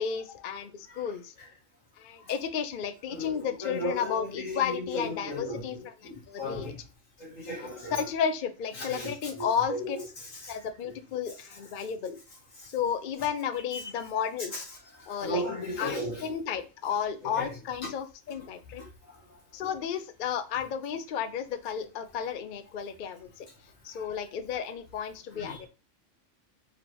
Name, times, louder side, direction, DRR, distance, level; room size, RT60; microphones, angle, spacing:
voice 1, 0.0-1.3 2.0-5.9 6.3-6.7 7.6-10.0 10.5-12.2 12.7-14.7 15.1-15.4 15.8-18.8 19.5-23.5 23.8-25.7, left 7 dB, 55° left, 9 dB, 0.6 m, -33 dB
voice 2, 3.1-5.6 6.0-6.8 7.2-8.0 8.8-9.1 9.4-9.8 13.7-13.8 15.1-16.2 17.4-17.5 25.4-25.7, left 1 dB, 80° left, -1 dB, 2.1 m, -35 dB
4.9 x 3.6 x 2.9 m, 0.33 s
omnidirectional pair, 1.3 m